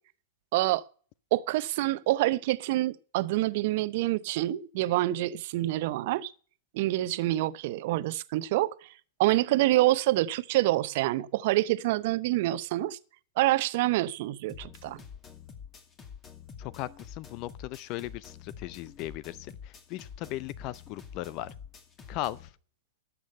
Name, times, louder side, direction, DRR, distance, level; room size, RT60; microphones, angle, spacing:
voice 1, 0.5-0.9 1.3-6.3 6.7-8.9 9.2-13.0 13.4-15.0, right 16 dB, 55° right, 0.7 m, -27 dB
sound 1, 14.5-22.5, left 7 dB, 25° left, 2.4 m, -47 dB
voice 2, 16.6-21.5 22.1-22.5, left 15 dB, 45° left, 0.5 m, -37 dB
13.0 x 7.1 x 6.5 m
hypercardioid pair, 110°, 0 cm